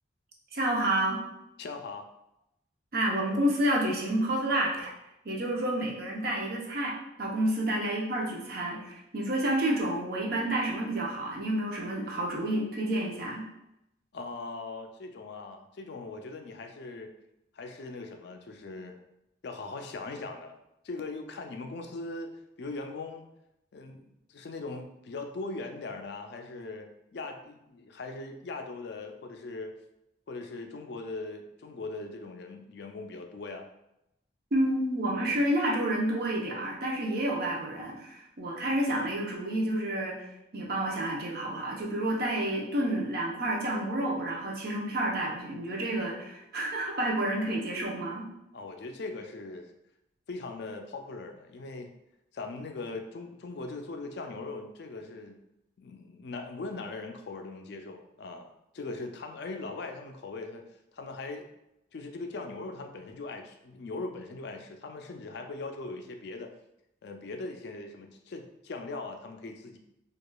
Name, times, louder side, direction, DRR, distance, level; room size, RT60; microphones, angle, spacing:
voice 1, 0.5-1.2 2.9-4.9 5.2-13.4 34.5-40.3 40.5-48.3, right 1 dB, 50° right, -2 dB, 0.7 m, -29 dB
voice 2, 1.6-2.1 14.1-17.1 17.5-19.0 19.4-20.6 20.8-23.3 23.7-29.7 30.3-33.7 48.5-49.7 50.3-51.9 52.3-55.4 55.8-60.6 60.9-61.5 61.9-66.5 67.0-69.8, left 3 dB, 60° left, 4 dB, 0.4 m, -40 dB
4.7 x 2.3 x 2.2 m, 0.86 s
head